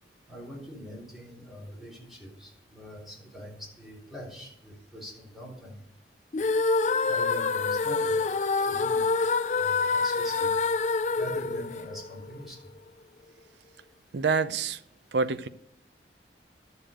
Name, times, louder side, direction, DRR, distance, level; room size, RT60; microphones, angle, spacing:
voice 1, 0.3-5.8 7.1-8.2 8.6-9.1 9.6-10.5 11.1-12.7, equal, ahead, 3.5 m, -43 dB
sound 1, 6.3-12.5, left 4 dB, 40° left, 0.4 m, -26 dB
voice 2, 14.1-14.8 15.1-15.5, right 4 dB, 75° right, 0.6 m, -26 dB
12.0 x 7.0 x 5.0 m
head